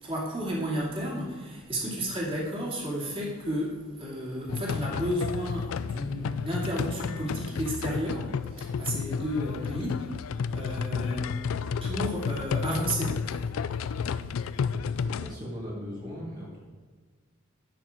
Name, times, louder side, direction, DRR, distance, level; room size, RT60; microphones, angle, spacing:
voice 1, 0.0-10.1 10.5-11.3 11.8-13.2, equal, 30° right, -4 dB, 2.4 m, -32 dB
sound 1, 4.5-15.4, left 6 dB, 90° left, 0.4 m, -32 dB
voice 2, 14.9-16.7, equal, 45° right, -6 dB, 1.9 m, -39 dB
10.0 x 6.4 x 4.9 m, 1.4 s
head